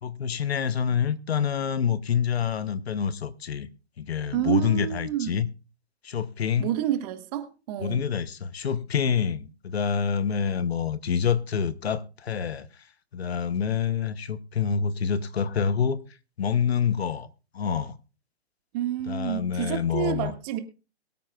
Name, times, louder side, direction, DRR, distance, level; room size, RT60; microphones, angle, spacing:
voice 1, 0.0-3.7 4.0-5.5 6.0-6.7 7.8-12.7 13.1-16.0 16.4-17.3 17.5-18.0 19.1-20.3, left 7 dB, 70° left, 1.1 m, -27 dB
voice 2, 4.3-5.4 6.6-8.0 18.7-20.6, right 12 dB, 40° right, 1.7 m, -29 dB
22.5 x 8.9 x 2.4 m
figure-of-eight pair, 125°, 32 cm